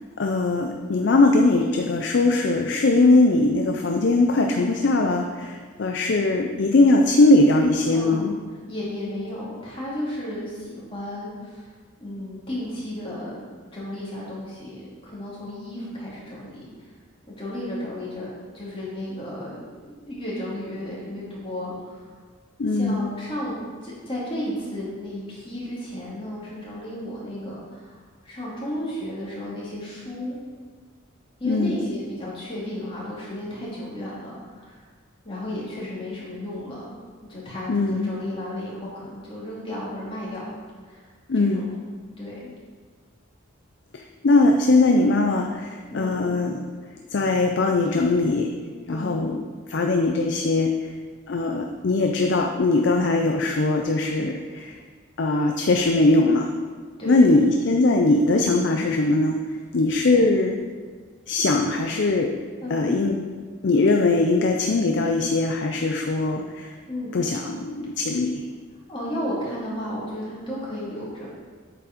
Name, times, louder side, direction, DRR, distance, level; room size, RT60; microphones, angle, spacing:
voice 1, 0.2-8.3 22.6-23.1 31.4-31.8 37.7-38.1 41.3-41.7 43.9-46.6 47.1-48.5 48.9-49.4 49.7-50.9 51.3-54.7 55.2-56.5 57.1-59.4 59.7-60.5 61.3-62.3 62.7-63.2 63.6-66.7 67.1-68.4, left 2 dB, 60° left, 3 dB, 0.5 m, -20 dB
voice 2, 7.9-8.3 8.7-11.7 12.0-13.4 13.7-16.6 17.4-18.3 18.5-22.0 22.7-28.0 28.2-30.4 31.4-34.8 35.2-36.9 37.3-40.5 40.9-41.1 41.3-41.7 42.2-42.5 45.9-46.2 48.9-49.3 57.0-57.5 62.6-62.9 66.9-67.2 68.9-71.3, left 1 dB, 25° left, -7 dB, 2.4 m, -33 dB
8.5 x 4.8 x 5.1 m, 1.5 s
head